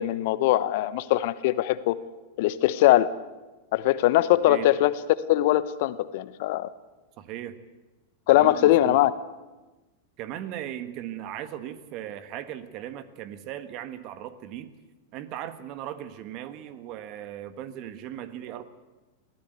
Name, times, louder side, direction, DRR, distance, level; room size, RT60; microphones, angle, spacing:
voice 1, 0.0-2.0 2.4-3.1 3.7-5.0 5.3-6.7 8.3-9.1, left 15 dB, 60° left, 16 dB, 0.9 m, -21 dB
voice 2, 7.2-7.5 8.3-9.0 10.2-14.7 15.1-18.6, right 11 dB, 45° right, 12 dB, 1.5 m, -37 dB
22.5 x 15.5 x 8.0 m, 1.2 s
hypercardioid pair, 100°, 0 cm